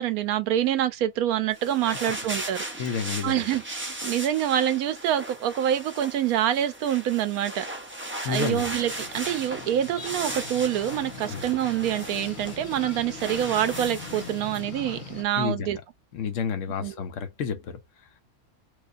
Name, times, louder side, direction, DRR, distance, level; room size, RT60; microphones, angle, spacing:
voice 1, 0.0-2.6 3.2-7.6 8.3-15.8 16.8-16.9, right 11 dB, 85° right, 1.1 m, -26 dB
sound 1, 1.5-14.6, right 1 dB, 15° right, 0.4 m, -37 dB
voice 2, 2.8-3.4 8.2-8.7 11.3-11.5 13.0-13.1 15.4-15.8 16.1-18.2, left 6 dB, 65° left, 0.9 m, -31 dB
sound 2, 8.7-15.2, left 5 dB, 85° left, 1.5 m, -41 dB
4.5 x 2.4 x 2.5 m
omnidirectional pair, 1.5 m